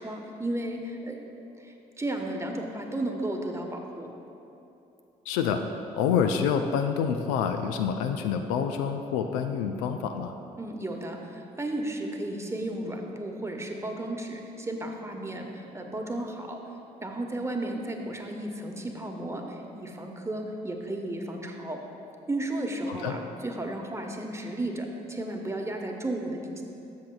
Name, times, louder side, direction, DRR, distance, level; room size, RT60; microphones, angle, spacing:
voice 1, 0.0-1.3 1.6-4.1 10.6-16.6 17.0-21.8 22.3-26.6, right 1 dB, 15° right, 2 dB, 1.1 m, -34 dB
voice 2, 5.3-5.6 5.9-10.4 22.9-23.2, left 7 dB, 75° left, 7 dB, 0.4 m, -27 dB
13.0 x 7.2 x 2.3 m, 2.9 s
hypercardioid pair, 45°, 20 cm